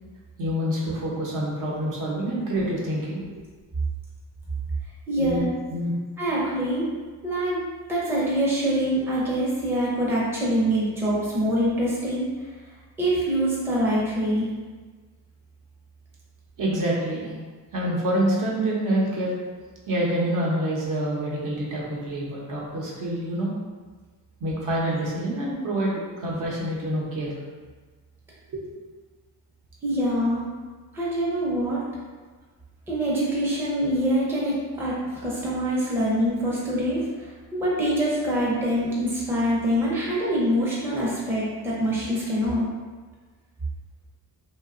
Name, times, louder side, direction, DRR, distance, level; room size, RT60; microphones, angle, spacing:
voice 1, 0.4-3.2 5.2-6.0 16.6-17.3 17.7-19.3 19.9-23.5 24.4-27.3 28.5-28.6, right 1 dB, 55° right, -4 dB, 0.7 m, -27 dB
voice 2, 5.1-5.5 6.2-6.9 7.2-7.6 7.9-12.3 13.0-14.5 29.8-30.4 30.9-31.8 32.9-35.0 35.2-42.7, equal, 5° right, -7 dB, 0.5 m, -24 dB
2.8 x 2.2 x 2.4 m, 1.4 s
cardioid pair, 120°, 37 cm